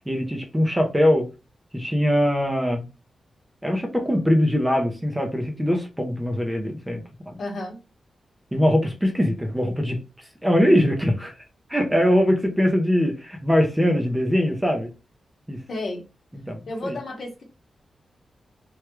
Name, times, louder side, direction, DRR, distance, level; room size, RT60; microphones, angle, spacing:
voice 1, 0.1-1.3 1.7-2.8 3.6-7.4 8.5-10.0 10.4-11.3 11.7-14.9 15.5-15.6 16.5-17.0, equal, 10° right, 0.6 m, -22 dB
voice 2, 7.4-7.8 15.7-16.0 16.7-17.4, left 2 dB, 60° left, 1.0 m, -31 dB
3.2 x 2.3 x 3.0 m
wide cardioid pair, 135°, 0 cm